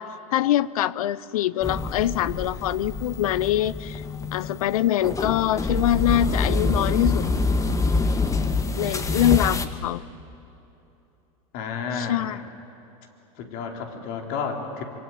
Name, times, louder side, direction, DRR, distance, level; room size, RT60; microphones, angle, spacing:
voice 1, 0.0-4.0 4.3-7.2 8.7-10.0 11.9-12.4, left 12 dB, 80° left, 20 dB, 0.6 m, -24 dB
sound 1, 1.6-9.6, left 3 dB, 15° left, 1.7 m, -26 dB
voice 2, 11.5-12.3 13.4-14.8, left 5 dB, 55° left, 3 dB, 4.0 m, -31 dB
25.5 x 25.0 x 9.3 m, 2.9 s
hypercardioid pair, 105°, 18 cm